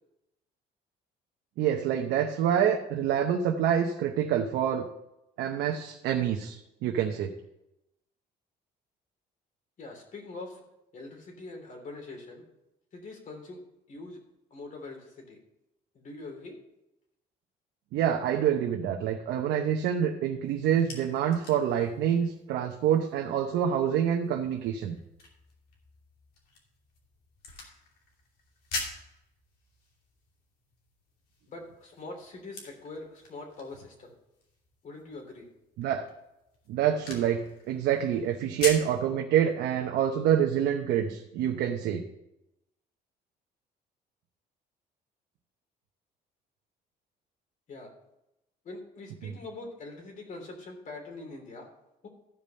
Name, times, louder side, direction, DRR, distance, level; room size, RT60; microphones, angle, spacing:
voice 1, 1.6-4.8 5.4-7.3 17.9-25.0 35.8-36.1 36.7-42.0 49.2-49.3, right 9 dB, 80° right, 2 dB, 0.9 m, -27 dB
voice 2, 9.8-10.6 10.9-12.4 12.9-13.6 13.9-14.2 14.5-15.4 15.9-16.6 31.5-34.1 34.8-35.5 47.7-47.9 48.6-51.7 52.0-52.1, left 2 dB, 50° left, 2 dB, 3.1 m, -43 dB
sound 1, 20.5-39.0, left 3 dB, 65° left, 2.7 m, -44 dB
14.0 x 5.2 x 5.6 m, 0.88 s
cardioid pair, 110°, 17 cm